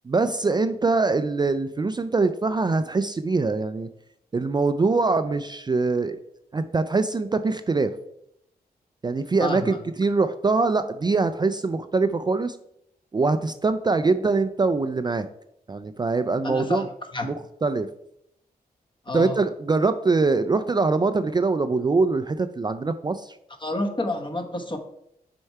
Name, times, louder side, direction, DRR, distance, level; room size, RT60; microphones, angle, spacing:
voice 1, 0.1-3.9 4.3-6.2 6.5-7.9 9.0-12.6 13.1-15.3 15.7-16.9 17.2-17.3 17.6-17.9 19.1-23.4, right 3 dB, 25° right, 10 dB, 0.3 m, -23 dB
voice 2, 9.4-9.8 16.4-16.9 17.1-17.3 19.1-19.4 23.6-24.8, left 2 dB, 30° left, 6 dB, 1.0 m, -29 dB
6.4 x 4.4 x 4.6 m, 0.78 s
cardioid pair, 70°, 16 cm